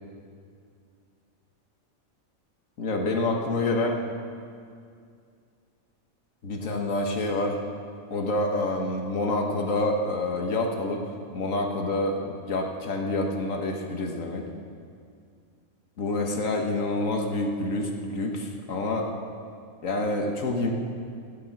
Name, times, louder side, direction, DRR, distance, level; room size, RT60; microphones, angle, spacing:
voice 1, 2.8-4.0 6.4-7.6 8.1-14.5 16.0-19.1 19.8-20.7, left 2 dB, 70° left, 2 dB, 1.8 m, -27 dB
15.5 x 10.5 x 6.0 m, 2.3 s
omnidirectional pair, 1.4 m